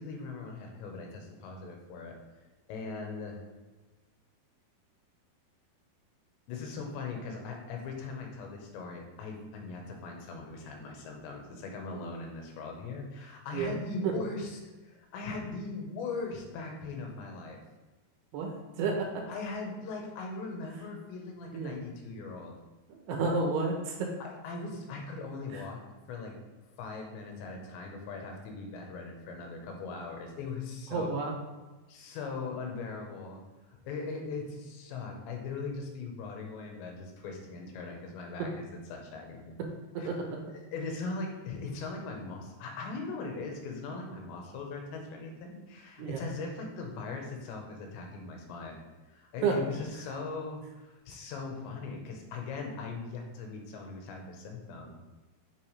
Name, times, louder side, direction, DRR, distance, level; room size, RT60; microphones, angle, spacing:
voice 1, 0.0-2.2 2.7-3.4 6.5-17.6 19.3-22.6 24.2-25.8 26.1-26.4 26.7-31.1 31.9-33.4 33.7-39.6 40.0-40.1 40.7-48.8 49.1-55.0, left 3 dB, 80° left, 1 dB, 3.4 m, -40 dB
voice 2, 18.8-19.2 21.5-21.7 22.9-24.1 25.5-25.6 30.9-31.4 39.9-40.4 46.0-46.2 49.4-49.6, right 4 dB, 75° right, 1 dB, 2.9 m, -31 dB
7.6 x 7.2 x 3.3 m, 1.2 s
omnidirectional pair, 5.1 m